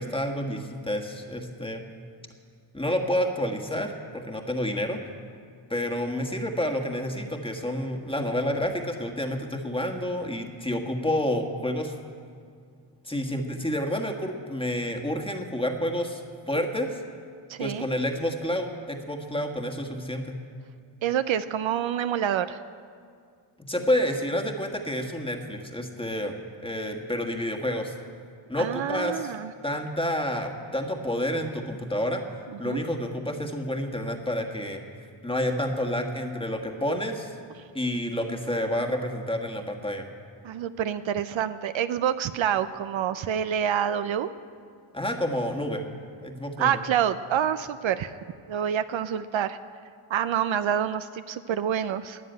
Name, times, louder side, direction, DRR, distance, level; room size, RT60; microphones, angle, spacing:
voice 1, 0.0-1.8 2.7-5.0 5.7-11.9 13.0-17.0 17.6-20.4 23.7-27.9 28.5-29.3 29.6-32.2 32.6-34.8 35.2-37.3 37.7-40.0 44.9-45.8 46.2-46.8, left 1 dB, 10° left, 3 dB, 1.5 m, -29 dB
voice 2, 17.5-17.8 21.0-22.6 28.6-29.5 32.6-32.8 40.4-44.3 46.6-48.1 48.5-49.6 50.1-52.2, right 9 dB, 70° right, 12 dB, 0.6 m, -27 dB
13.5 x 9.5 x 9.1 m, 2.2 s
cardioid pair, 85°, 50 cm